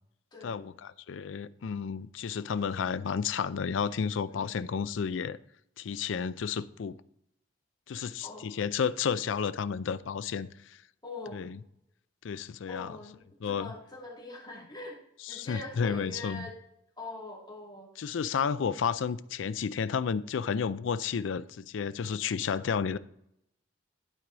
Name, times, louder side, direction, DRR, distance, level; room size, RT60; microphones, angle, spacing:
voice 1, 0.4-5.4 5.8-7.0 7.9-10.5 11.3-11.6 12.2-12.9 13.4-13.7 15.3-16.4 18.0-23.0, left 6 dB, 75° left, 0.4 m, -31 dB
voice 2, 4.3-4.6 7.9-8.5 11.0-11.4 12.7-15.0 15.3-16.5 17.0-18.2, left 2 dB, 25° left, 2.5 m, -43 dB
11.5 x 4.8 x 3.9 m
head